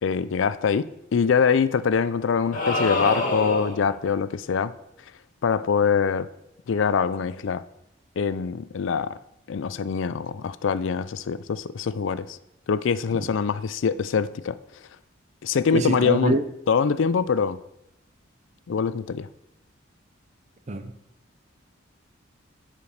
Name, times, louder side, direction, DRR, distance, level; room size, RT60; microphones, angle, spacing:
voice 1, 0.0-4.7 5.4-6.3 6.7-7.6 8.2-9.1 9.5-12.4 12.7-14.6 15.4-16.4 16.7-17.6 18.7-19.3, left 6 dB, 70° left, 0.4 m, -24 dB
sound 1, 2.5-3.9, left 2 dB, 40° left, 1.8 m, -26 dB
voice 2, 15.7-16.4 20.7-20.9, right 2 dB, 35° right, 0.6 m, -25 dB
7.7 x 5.1 x 6.5 m
head